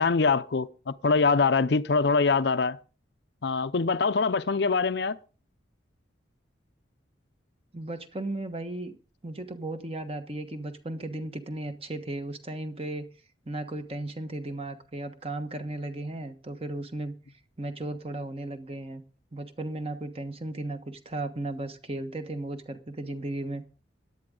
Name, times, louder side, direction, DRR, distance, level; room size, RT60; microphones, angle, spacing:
voice 1, 0.0-2.8 3.4-5.2, left 4 dB, 60° left, 0.5 m, -24 dB
voice 2, 7.7-9.0 9.2-13.1 13.4-17.1 17.6-19.0 19.3-23.6, right 2 dB, 30° right, 1.3 m, -35 dB
17.5 x 11.0 x 3.8 m
head